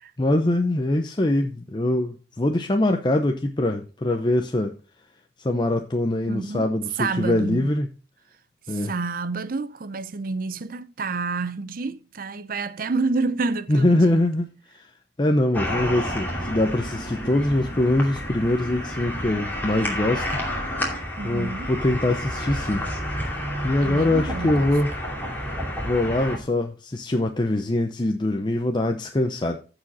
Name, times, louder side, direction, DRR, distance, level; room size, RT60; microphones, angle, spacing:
voice 1, 0.2-4.7 5.4-7.9 8.7-8.9 13.7-14.9 15.2-20.4 21.2-22.8 23.6-24.9 25.8-29.6, left 1 dB, 25° left, 0.7 m, -23 dB
voice 2, 6.3-6.7 7.0-7.7 8.7-14.2 21.2-21.7 23.8-24.7, right 3 dB, 55° right, 0.6 m, -29 dB
sound 1, 15.5-26.4, equal, 10° left, 2.7 m, -30 dB
14.5 x 4.9 x 4.1 m
head